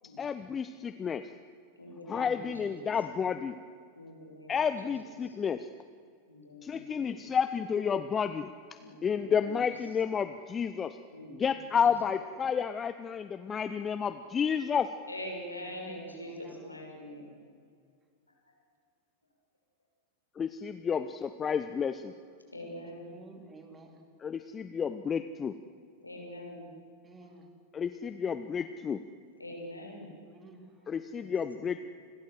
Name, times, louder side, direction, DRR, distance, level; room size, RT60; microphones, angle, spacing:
voice 1, 0.2-1.3 2.1-3.6 4.5-5.7 6.6-8.5 8.8-11.0 11.3-14.9 20.4-22.1 24.2-25.6 27.7-29.0 30.9-31.8, left 7 dB, 20° left, 11 dB, 0.9 m, -31 dB
voice 2, 1.8-2.9 3.9-4.9 5.2-5.4 6.3-7.3 8.8-9.5 11.1-11.7 15.1-17.3 22.4-23.1 26.0-26.7 27.2-27.3 29.4-30.1 31.1-31.8, left 1 dB, 85° left, 1 dB, 6.5 m, -44 dB
voice 3, 15.6-16.8 22.8-24.0 27.0-27.5 30.2-30.9, right 3 dB, 15° right, 5 dB, 4.0 m, -52 dB
29.0 x 21.5 x 7.8 m, 2.2 s
figure-of-eight pair, 90°, 0 cm